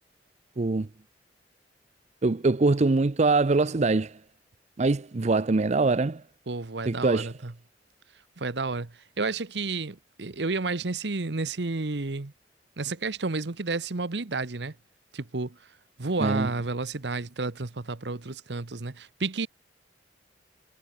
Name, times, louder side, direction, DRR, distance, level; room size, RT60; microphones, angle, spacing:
voice 1, 0.6-0.9 2.2-4.1 4.8-6.2 6.9-7.3 16.2-16.5, right 3 dB, 40° right, 0.6 m, -23 dB
voice 2, 6.5-7.5 8.4-12.3 12.8-14.7 15.1-15.6 16.0-19.5, right 3 dB, 75° right, 1.1 m, -31 dB
head